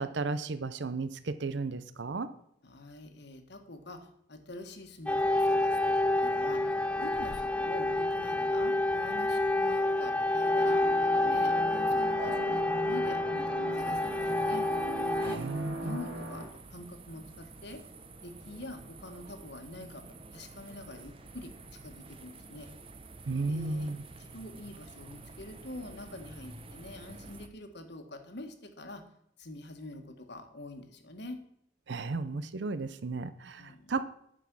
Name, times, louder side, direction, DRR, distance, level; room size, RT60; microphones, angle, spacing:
voice 1, 0.0-2.3 15.2-16.0 23.3-24.0 31.9-34.0, right 3 dB, 65° right, 13 dB, 0.6 m, -34 dB
voice 2, 2.6-5.9 6.2-6.6 7.0-14.6 15.2-15.4 15.8-17.8 18.2-21.5 21.8-22.7 23.5-23.9 24.2-29.0 29.4-31.4 33.6-33.9, left 1 dB, 65° left, 6 dB, 1.5 m, -45 dB
sound 1, 5.1-15.4, left 2 dB, 5° left, 0.4 m, -28 dB
sound 2, 10.3-16.4, right 2 dB, 85° right, 2.6 m, -39 dB
sound 3, 13.8-27.5, right 3 dB, 30° right, 0.9 m, -50 dB
10.5 x 6.2 x 6.2 m, 0.72 s
head